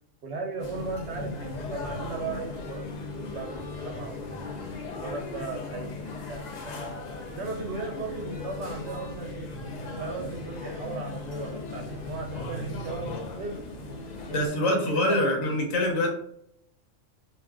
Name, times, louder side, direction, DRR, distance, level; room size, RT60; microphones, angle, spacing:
voice 1, 0.2-4.4 4.9-9.5 10.0-13.7 14.3-15.2, right 3 dB, 65° right, 3 dB, 0.8 m, -37 dB
sound 1, 0.6-14.5, left 3 dB, 70° left, 0.4 m, -37 dB
voice 2, 14.3-16.1, left 1 dB, 90° left, 2 dB, 1.1 m, -25 dB
2.5 x 2.4 x 3.4 m, 0.70 s
omnidirectional pair, 1.3 m